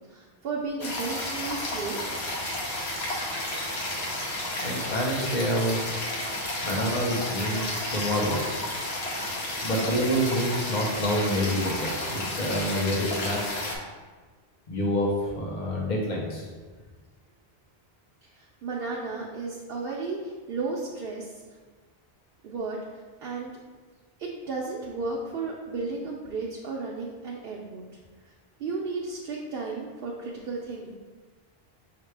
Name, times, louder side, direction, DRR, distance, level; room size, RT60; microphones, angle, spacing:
voice 1, 0.1-2.0 2.5-2.6 18.4-21.3 22.4-22.8 23.2-23.5 24.2-27.8 28.6-30.9, right 3 dB, 70° right, -3 dB, 0.7 m, -33 dB
sound 1, 0.8-13.8, left 1 dB, 85° left, 1.0 m, -32 dB
voice 2, 4.6-5.8 6.6-8.4 9.6-13.5 14.7-16.5, equal, 50° left, -2 dB, 1.0 m, -27 dB
5.5 x 2.9 x 3.2 m, 1.4 s
omnidirectional pair, 1.0 m